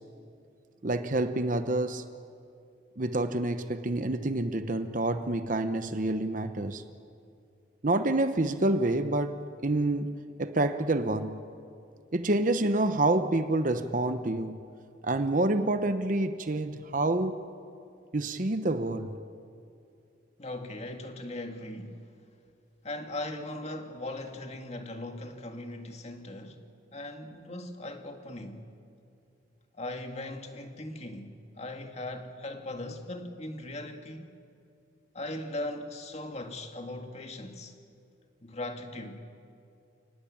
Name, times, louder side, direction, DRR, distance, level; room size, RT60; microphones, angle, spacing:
voice 1, 0.8-2.0 3.0-6.8 7.8-9.4 9.6-11.4 12.1-14.6 15.0-17.4 18.1-19.2, right 2 dB, 45° right, 1.0 m, -28 dB
voice 2, 20.4-22.1 22.8-26.6 26.9-28.7 29.7-34.4 35.1-37.7 38.4-39.2, left 1 dB, 35° left, 2.0 m, -39 dB
29.0 x 19.0 x 8.7 m
head